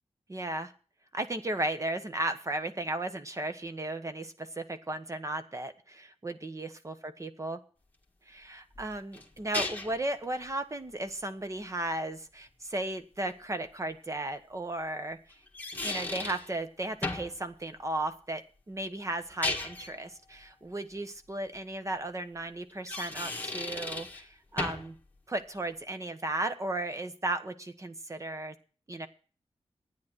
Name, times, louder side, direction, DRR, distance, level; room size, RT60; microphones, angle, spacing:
voice 1, 0.3-0.7 1.1-7.6 8.3-15.2 15.8-24.9 25.3-28.5 28.9-29.1, right 2 dB, 30° right, 9 dB, 1.2 m, -35 dB
sound 1, 8.7-10.1 13.3-13.4 15.3-16.5 17.0-17.4 19.2-19.9 22.7-24.2 24.6-25.0, left 2 dB, 15° left, 1.9 m, -35 dB
11.5 x 9.6 x 6.3 m, 0.40 s
wide cardioid pair, 105°, 11 cm